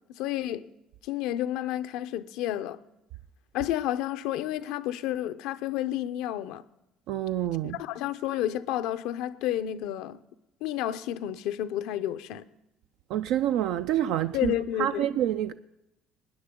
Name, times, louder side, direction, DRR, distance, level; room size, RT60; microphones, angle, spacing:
voice 1, 0.1-0.7 1.0-2.8 3.5-6.6 7.7-10.2 10.6-12.4 14.3-15.1, left 12 dB, 80° left, 0.6 m, -30 dB
voice 2, 7.1-7.8 13.1-14.5 14.8-15.5, right 12 dB, 75° right, 0.3 m, -27 dB
20.0 x 9.7 x 3.7 m
cardioid pair, 110°, 0 cm